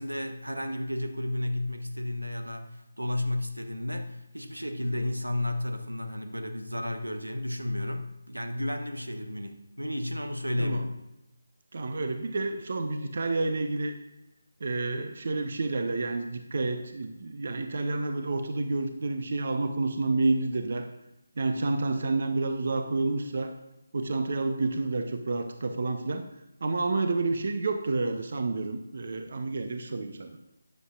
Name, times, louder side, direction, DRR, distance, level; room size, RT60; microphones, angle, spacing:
voice 1, 0.0-10.9, left 1 dB, 85° right, 7 dB, 1.1 m, -32 dB
voice 2, 11.7-13.9 14.6-20.9 21.4-23.6 23.9-26.2 26.6-30.4, right 3 dB, 50° right, 7 dB, 0.8 m, -29 dB
13.0 x 9.7 x 2.4 m, 0.95 s
figure-of-eight pair, 150°, 0 cm